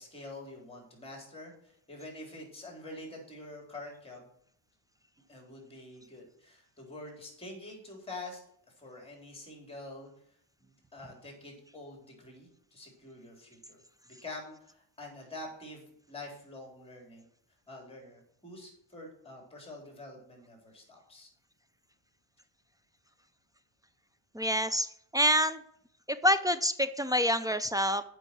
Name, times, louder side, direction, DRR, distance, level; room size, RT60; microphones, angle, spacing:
voice 1, 0.0-4.3 5.3-8.4 8.8-10.1 10.6-17.3 17.7-21.3, left 2 dB, 15° left, 1 dB, 3.7 m, -46 dB
voice 2, 24.4-24.9 25.1-25.6 26.2-28.0, equal, 10° right, 12 dB, 0.3 m, -26 dB
8.1 x 5.7 x 7.3 m, 0.68 s
cardioid pair, 120°, 44 cm